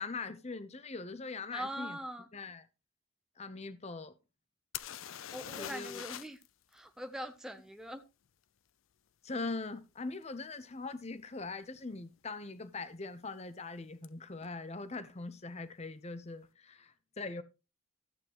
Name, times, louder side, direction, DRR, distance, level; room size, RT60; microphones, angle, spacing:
voice 1, 0.0-2.0 2.3-2.7 3.4-4.1 5.6-6.0 9.2-17.4, left 3 dB, 30° left, 0.8 m, -41 dB
voice 2, 1.5-2.3 5.3-6.4 6.7-8.0, equal, 5° right, 0.6 m, -42 dB
sound 1, 4.7-6.5 6.7-6.8 10.2-10.3 11.0-11.2 11.4-12.0 14.0-14.1 14.4-14.5, left 10 dB, 75° left, 0.5 m, -43 dB
14.0 x 8.2 x 3.0 m
head